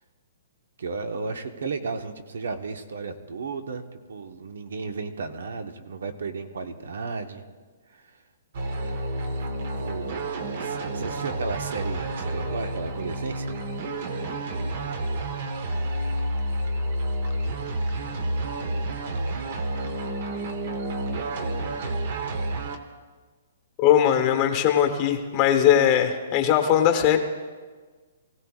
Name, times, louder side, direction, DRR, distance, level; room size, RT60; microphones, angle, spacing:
voice 1, 0.8-7.4 7.9-8.1 9.7-13.5, right 4 dB, 85° right, 7 dB, 1.2 m, -34 dB
sound 1, 8.5-22.8, right 1 dB, 40° right, 1.1 m, -30 dB
voice 2, 23.8-27.2, left 10 dB, 20° left, 5 dB, 1.0 m, -20 dB
24.0 x 16.0 x 2.4 m, 1.4 s
hypercardioid pair, 175°, 0 cm